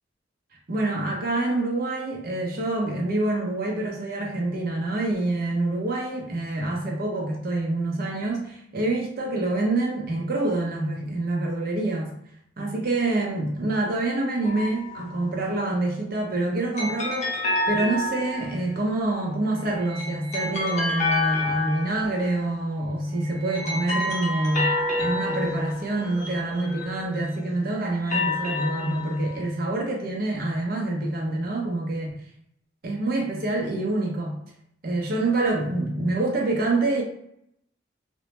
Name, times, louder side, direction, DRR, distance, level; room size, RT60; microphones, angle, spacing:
voice 1, 0.7-12.1 12.6-32.2 32.8-34.4 34.8-37.0, right 2 dB, 55° right, 0 dB, 0.6 m, -26 dB
sound 1, 14.4-15.2 16.8-18.7 19.7-22.5 23.2-27.3 27.9-29.5, left 2 dB, 40° left, 0.6 m, -29 dB
2.1 x 2.0 x 2.9 m, 0.74 s
head